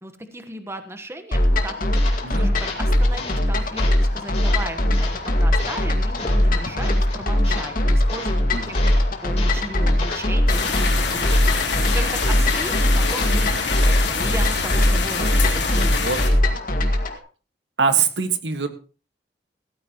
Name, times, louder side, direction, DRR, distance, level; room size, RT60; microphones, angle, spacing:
voice 1, 0.0-1.9 2.4-5.1 5.4-8.9 9.2-16.4, right 1 dB, 15° right, 7 dB, 1.2 m, -36 dB
sound 1, 1.3-17.2, left 1 dB, 50° left, 2.0 m, -21 dB
sound 2, 1.9-14.1, left 3 dB, 35° left, 3.7 m, -35 dB
voice 2, 8.5-9.0 11.8-11.9 16.0-16.2 17.8-18.7, right 6 dB, 85° right, 8 dB, 1.7 m, -23 dB
sound 3, 10.5-16.3, left 4 dB, 85° left, 3.2 m, -25 dB
16.5 x 13.5 x 3.0 m, 0.36 s
head